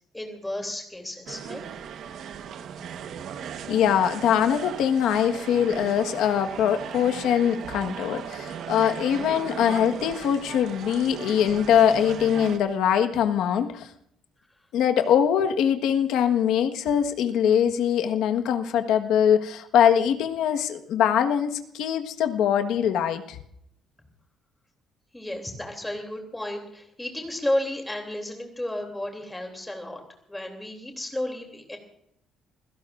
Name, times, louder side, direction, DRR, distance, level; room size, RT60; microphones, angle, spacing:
voice 1, 0.1-1.7 25.1-30.0 30.3-31.8, left 1 dB, 5° left, 3 dB, 3.0 m, -32 dB
sound 1, 1.3-12.6, right 8 dB, 55° right, 1.2 m, -37 dB
voice 2, 3.7-13.9 14.7-23.4, left 9 dB, 70° left, 6 dB, 1.4 m, -22 dB
28.0 x 16.5 x 2.6 m, 0.73 s
cardioid pair, 175°, 0 cm